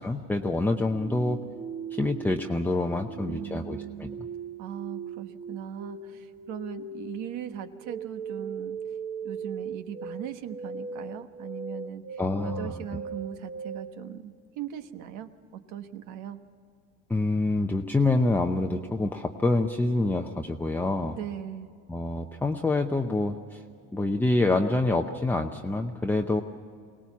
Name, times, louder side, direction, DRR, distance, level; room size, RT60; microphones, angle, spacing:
voice 1, 0.0-1.4 1.9-4.1 12.2-12.7 17.1-21.2 21.9-23.6 23.9-26.4, left 2 dB, 5° left, 2 dB, 0.7 m, -26 dB
sound 1, 0.7-14.0, right 5 dB, 30° right, 1.3 m, -39 dB
voice 2, 3.3-4.2 4.6-8.8 9.2-16.4 21.1-21.7, right 10 dB, 65° right, 9 dB, 1.3 m, -39 dB
23.5 x 18.5 x 7.2 m, 2.2 s
cardioid pair, 130°, 32 cm